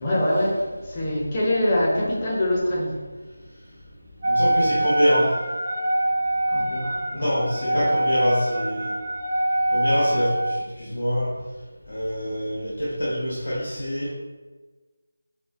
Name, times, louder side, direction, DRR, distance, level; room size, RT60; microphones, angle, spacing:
voice 1, 0.0-3.0 6.5-7.3 7.7-7.9, left 1 dB, 25° left, -6 dB, 0.7 m, -24 dB
voice 2, 4.2-5.4 7.1-8.9 9.7-11.3 11.9-14.1, equal, 70° left, -7 dB, 0.8 m, -25 dB
Wind instrument woodwind instrument, 4.2-10.7, right 1 dB, 40° right, 0.4 m, -24 dB
4.1 x 2.0 x 2.2 m, 1.3 s
figure-of-eight pair, 165°, 0 cm